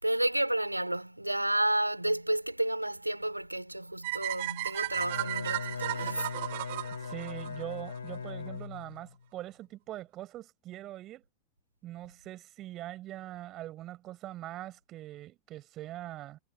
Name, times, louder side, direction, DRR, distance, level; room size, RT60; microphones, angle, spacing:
voice 1, 0.0-6.4, right 1 dB, 85° right, 3.5 m, -31 dB
sound 1, 4.0-8.2, right 19 dB, 50° right, 5.6 m, -35 dB
Bowed string instrument, 4.9-9.1, left 6 dB, 75° left, 5.9 m, -39 dB
voice 2, 7.0-11.2 11.8-16.4, right 14 dB, 35° right, 6.3 m, -42 dB
figure-of-eight pair, 90°, 0 cm